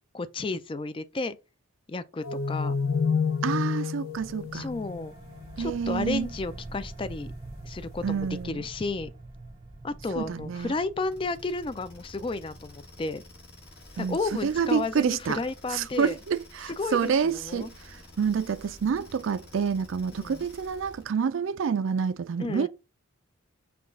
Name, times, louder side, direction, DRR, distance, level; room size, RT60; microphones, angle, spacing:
voice 1, 0.1-1.4 1.9-2.8 4.5-5.2 5.6-7.3 7.6-9.1 9.8-13.2 14.0-16.2 16.8-17.7 20.1-20.4 22.4-22.7, left 3 dB, 25° left, 0.3 m, -32 dB
sound 1, 2.2-5.7, left 5 dB, 85° left, 0.6 m, -29 dB
voice 2, 3.4-4.7 5.6-6.3 8.0-8.6 10.2-10.7 14.0-15.4 15.7-22.7, right 6 dB, 70° right, 0.4 m, -28 dB
sound 2, 4.1-14.3, right 2 dB, 20° right, 0.6 m, -45 dB
sound 3, 11.0-21.2, left 1 dB, 55° left, 2.0 m, -50 dB
5.8 x 2.3 x 3.6 m
head